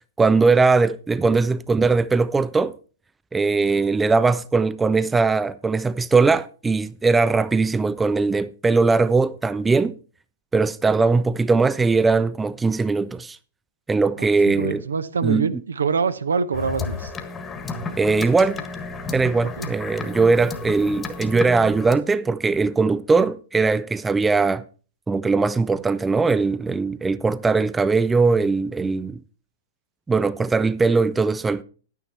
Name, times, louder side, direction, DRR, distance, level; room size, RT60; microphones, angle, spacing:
voice 1, 0.2-2.7 3.3-9.9 10.5-13.4 13.9-14.8 15.2-15.5 18.0-18.6 19.1-24.6 25.1-29.2 30.1-31.6, right 4 dB, 10° right, 0.4 m, -20 dB
voice 2, 14.2-17.1 19.6-19.7, right 5 dB, 75° right, 0.8 m, -25 dB
sound 1, 16.5-21.9, left 4 dB, 20° left, 1.5 m, -33 dB
11.0 x 9.6 x 4.2 m
figure-of-eight pair, 105°, 0 cm